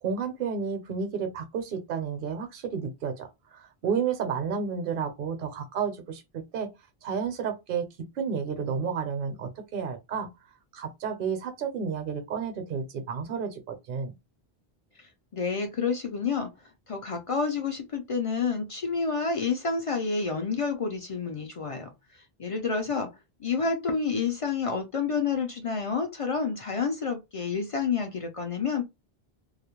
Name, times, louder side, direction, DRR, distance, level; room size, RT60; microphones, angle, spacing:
voice 1, 0.0-3.3 3.5-6.7 7.0-7.9 8.2-10.3 10.7-14.1, right 6 dB, 60° right, 0.8 m, -31 dB
voice 2, 15.0-16.5 16.9-23.1 23.4-28.9, left 5 dB, 45° left, 0.4 m, -29 dB
2.3 x 2.0 x 2.9 m
omnidirectional pair, 1.0 m